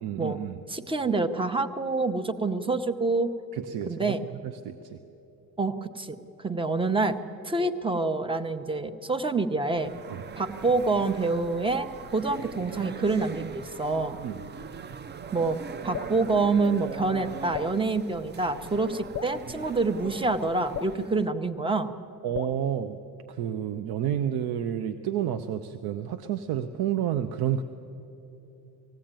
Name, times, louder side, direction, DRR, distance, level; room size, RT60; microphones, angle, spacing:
voice 1, 0.0-0.6 3.5-4.2 4.4-5.0 10.1-10.2 14.2-14.4 22.2-23.0 23.3-27.6, right 10 dB, 80° right, 9 dB, 0.8 m, -30 dB
voice 2, 0.7-3.3 3.9-4.3 5.6-6.2 6.4-7.2 7.4-9.9 10.3-14.2 15.3-21.9, right 3 dB, 15° right, 10 dB, 0.9 m, -27 dB
sound 1, 9.6-21.3, right 6 dB, 30° right, 0.5 m, -41 dB
Drip, 15.9-16.2 17.5-17.8 19.1-19.4 20.7-21.0 22.3-22.6, left 12 dB, 40° left, 0.6 m, -36 dB
19.5 x 15.0 x 9.0 m, 2.9 s
cardioid pair, 110°, 37 cm